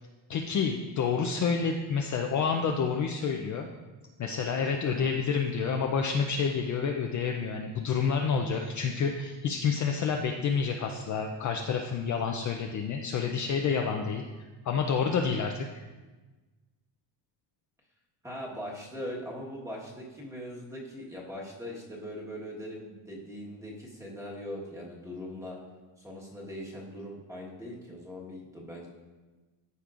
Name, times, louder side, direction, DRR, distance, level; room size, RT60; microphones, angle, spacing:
voice 1, 0.3-3.7 4.2-14.2 14.6-15.7, left 6 dB, 40° left, 2 dB, 0.5 m, -29 dB
voice 2, 18.2-25.6 26.0-28.9, equal, 5° right, -4 dB, 1.3 m, -41 dB
13.5 x 5.2 x 2.5 m, 1.2 s
cardioid pair, 155°, 48 cm